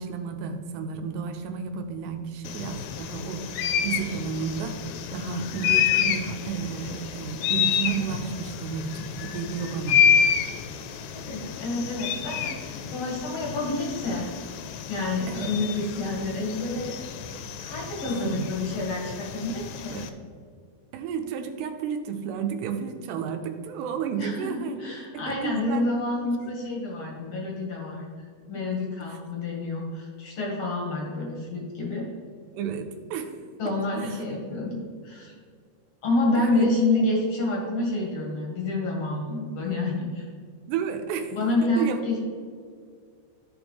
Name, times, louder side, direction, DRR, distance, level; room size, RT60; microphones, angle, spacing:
voice 1, 0.0-4.8 5.1-10.0 15.3-15.5 18.1-18.5 19.9-20.1 20.9-25.9 26.2-26.5 32.5-33.3 34.0-34.2 36.4-36.7 40.7-41.3 41.8-42.0, right 6 dB, 85° right, 5 dB, 2.8 m, -32 dB
sound 1, 2.4-20.1, left 8 dB, 85° left, 2.7 m, -29 dB
voice 2, 11.1-14.3 14.9-16.9 17.6-20.0 24.2-32.1 33.6-35.3 36.0-40.2 41.3-42.2, left 2 dB, 60° left, -2 dB, 1.7 m, -28 dB
14.0 x 5.2 x 3.2 m, 2.1 s
omnidirectional pair, 5.0 m